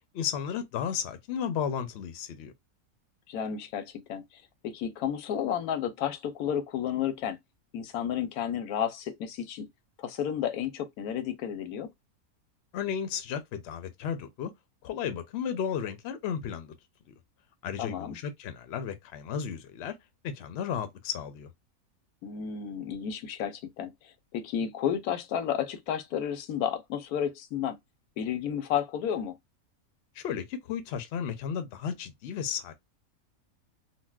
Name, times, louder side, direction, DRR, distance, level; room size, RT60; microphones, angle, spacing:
voice 1, 0.1-2.5 12.7-14.5 14.8-16.7 17.6-19.9 20.2-21.5 30.1-32.7, left 8 dB, 65° left, 0.7 m, -34 dB
voice 2, 3.3-7.4 7.7-9.7 10.0-11.9 17.8-18.2 22.2-27.8 28.2-29.4, left 9 dB, 85° left, 1.1 m, -32 dB
4.0 x 2.1 x 2.3 m
omnidirectional pair, 1.5 m